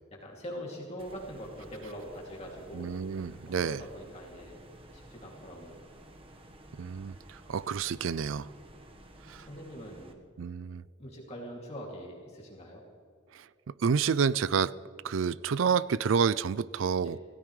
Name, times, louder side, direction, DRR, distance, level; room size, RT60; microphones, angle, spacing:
voice 1, 0.1-2.9 3.4-4.6 4.9-5.8 9.4-10.2 11.0-12.8 17.0-17.2, equal, 35° left, 2.7 m, -43 dB
sound 1, 1.0-10.1, right 1 dB, 30° right, 1.3 m, -53 dB
voice 2, 2.7-3.8 6.8-8.5 9.3-9.5 10.4-10.8 13.3-13.5 13.8-14.7 15.0-17.2, right 6 dB, 80° right, 0.4 m, -29 dB
26.0 x 16.5 x 3.3 m
head